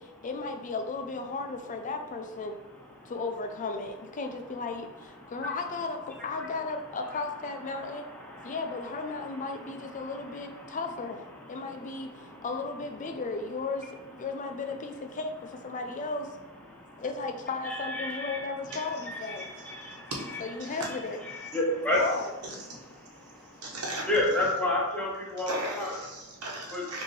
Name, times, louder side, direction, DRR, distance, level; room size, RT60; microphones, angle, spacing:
voice 1, 0.0-2.6 3.1-8.0 8.4-11.2 11.5-12.1 12.4-16.3 17.0-19.5 20.4-21.2 21.9-22.3, left 3 dB, 35° left, 5 dB, 0.4 m, -35 dB
voice 2, 7.7-8.6 9.8-9.9 10.2-10.3 17.6-18.4 18.7-20.0 20.8-21.0 21.2-22.0 24.1-26.0 26.7-26.8, left 1 dB, 5° left, -4 dB, 0.8 m, -31 dB
voice 3, 22.4-22.8 23.6-24.1 24.4-24.5 25.5-27.0, right 1 dB, 80° right, -3 dB, 1.2 m, -37 dB
5.1 x 2.7 x 3.2 m, 1.0 s
head